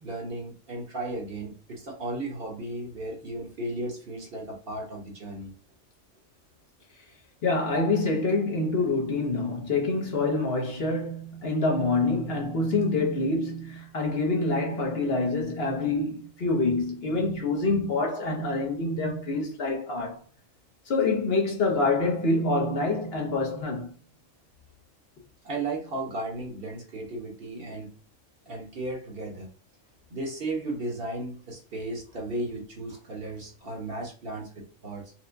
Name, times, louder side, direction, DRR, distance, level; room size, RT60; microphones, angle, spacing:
voice 1, 0.0-5.5 25.4-27.9 28.5-29.5 30.1-35.1, right 2 dB, 50° right, 1.0 m, -35 dB
voice 2, 7.4-20.2 20.9-23.9, left 3 dB, 55° left, 0.9 m, -26 dB
4.3 x 2.1 x 2.5 m
omnidirectional pair, 1.4 m